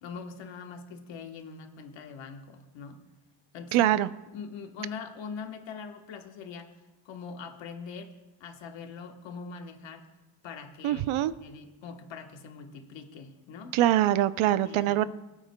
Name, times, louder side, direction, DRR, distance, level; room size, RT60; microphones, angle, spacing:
voice 1, 0.0-3.0 3.5-3.9 4.3-6.7 7.0-8.1 8.4-10.1 10.4-11.1 11.4-13.8 14.6-15.0, left 5 dB, 65° left, 4 dB, 1.2 m, -42 dB
voice 2, 3.7-4.1 10.8-11.3 13.7-15.1, right 13 dB, 75° right, 15 dB, 0.6 m, -23 dB
21.5 x 8.7 x 2.2 m, 1.1 s
cardioid pair, 170°, 49 cm